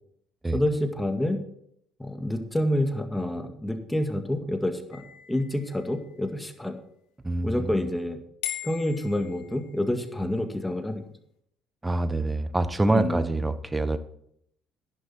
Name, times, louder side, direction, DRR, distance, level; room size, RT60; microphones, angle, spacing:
voice 1, 0.5-1.4 2.0-6.8 7.4-8.2 8.6-11.0 12.9-13.2, left 1 dB, 10° left, 6 dB, 2.0 m, -28 dB
sound 1, 4.9-6.5 8.4-10.0, left 12 dB, 75° left, 1.8 m, -40 dB
voice 2, 7.2-7.8 11.8-14.0, right 2 dB, 15° right, 13 dB, 1.1 m, -26 dB
11.0 x 11.0 x 4.6 m, 0.70 s
hypercardioid pair, 55°, 0 cm